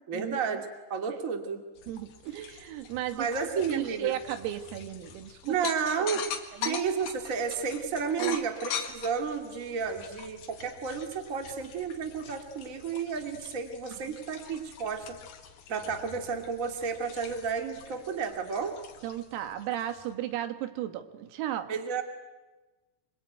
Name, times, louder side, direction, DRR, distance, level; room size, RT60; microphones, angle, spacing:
voice 1, 0.1-1.6 3.1-4.1 5.4-6.3 6.6-15.2 15.7-18.8 21.7-22.0, right 6 dB, 65° right, 5 dB, 0.7 m, -32 dB
sound 1, 1.8-20.1, left 7 dB, 60° left, 3.1 m, -43 dB
voice 2, 1.9-3.3 3.7-5.6 6.5-6.8 8.2-8.4 14.1-14.2 19.0-21.8, right 12 dB, 85° right, 9 dB, 4.3 m, -35 dB
25.5 x 24.0 x 9.3 m, 1.2 s
omnidirectional pair, 6.0 m